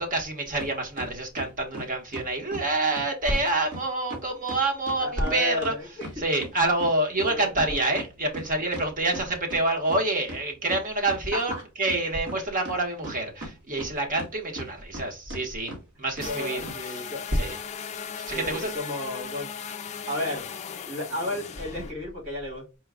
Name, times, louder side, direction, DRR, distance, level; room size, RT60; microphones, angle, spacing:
voice 1, 0.0-5.7 6.2-11.5 11.8-15.7 16.0-16.6 17.4-17.5 18.2-18.7, right 2 dB, 40° right, 1.1 m, -27 dB
sound 1, 0.6-0.7 1.0-2.7 2.9-3.0 3.3-3.5 3.7-3.8 4.1-6.5 6.8-9.6 9.9-10.0 10.3-11.2 11.5-12.4 12.6-14.3 14.5-15.0 15.3-15.4 15.7-15.8 16.2-16.3 16.6-16.8, right 1 dB, 60° right, 1.6 m, -37 dB
voice 2, 5.0-6.2 7.3-7.8 11.3-11.4 16.2-17.2 18.3-19.5 20.1-20.5 20.9-22.7, left 1 dB, 90° right, 2.2 m, -33 dB
sound 2, 16.2-21.9, left 7 dB, 30° left, 0.3 m, -37 dB
4.5 x 2.3 x 3.6 m
head